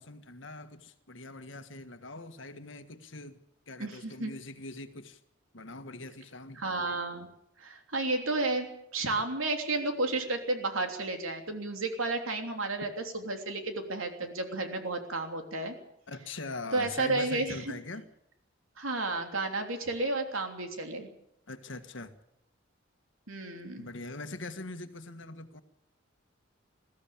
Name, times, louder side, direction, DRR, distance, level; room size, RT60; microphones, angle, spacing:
voice 1, 0.0-3.4 3.7-5.2 5.5-6.6 16.1-18.1 21.5-22.1 23.8-25.6, left 2 dB, 70° left, 1.7 m, -42 dB
voice 2, 3.8-4.3 6.6-7.3 7.6-12.9 13.1-15.7 16.7-17.7 18.8-21.1 23.3-23.9, right 2 dB, 90° right, 3.2 m, -32 dB
21.5 x 15.0 x 8.7 m
head